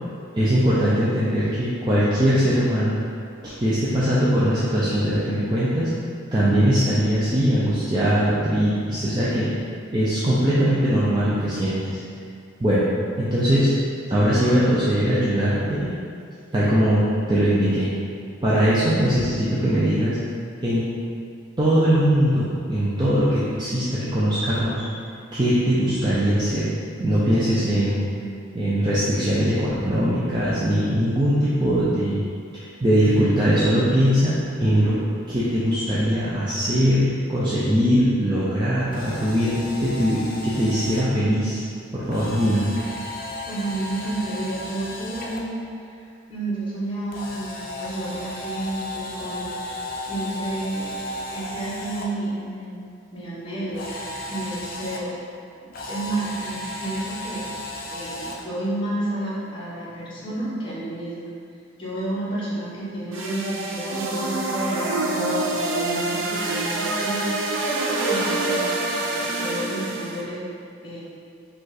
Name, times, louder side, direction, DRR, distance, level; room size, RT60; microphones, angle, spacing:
voice 1, 0.3-3.0 3.4-5.9 6.3-9.5 9.9-12.0 12.6-12.9 13.2-13.7 14.1-15.9 16.5-17.9 18.4-20.2 20.6-20.9 21.6-24.8 25.3-26.7 27.0-28.0 28.5-32.2 32.5-34.3 34.6-35.0 35.3-41.6 41.9-42.7, equal, 20° right, -10 dB, 0.5 m, -21 dB
Camera, 38.8-41.0 42.1-45.4 47.1-52.0 53.7-55.0 55.7-58.4, left 1 dB, 45° left, 0.5 m, -34 dB
voice 2, 43.4-46.0 46.3-49.8 50.0-50.9 51.3-52.8 53.1-55.1 55.6-57.5 57.9-61.3 61.8-67.4 68.1-70.4 70.8-71.0, right 1 dB, 25° left, -9 dB, 1.1 m, -31 dB
sound 1, 63.1-70.2, right 2 dB, 70° right, 0.6 m, -26 dB
5.1 x 2.5 x 4.0 m, 2.4 s
head